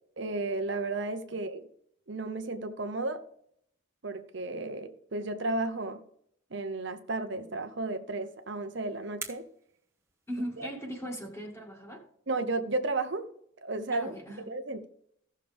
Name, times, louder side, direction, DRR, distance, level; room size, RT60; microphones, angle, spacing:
voice 1, 0.2-1.7 2.1-3.2 4.0-6.0 6.5-9.5 10.6-10.7 12.3-13.3 13.6-14.1 14.5-14.9, right 2 dB, 60° right, 0.9 m, -33 dB
sound 1, 8.1-10.8, right 4 dB, 15° right, 1.4 m, -48 dB
voice 2, 10.3-12.0 13.9-14.4, equal, 15° left, 2.0 m, -38 dB
16.0 x 6.5 x 3.5 m
head